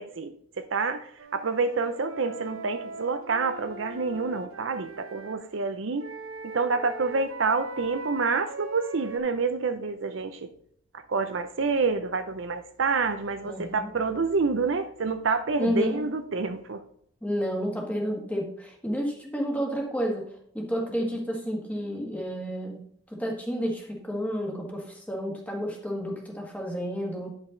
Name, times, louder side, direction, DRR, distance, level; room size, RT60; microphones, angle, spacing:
voice 1, 0.0-6.0 6.4-10.5 11.1-16.8, right 4 dB, 60° right, 8 dB, 0.6 m, -28 dB
Wind instrument woodwind instrument, 1.2-5.4 6.0-9.2, right 3 dB, 85° right, 1.0 m, -40 dB
voice 2, 13.4-13.9 15.6-16.0 17.2-20.3 20.5-22.8 23.1-27.3, equal, 5° left, 0 dB, 1.6 m, -30 dB
10.0 x 5.4 x 3.8 m, 0.67 s
head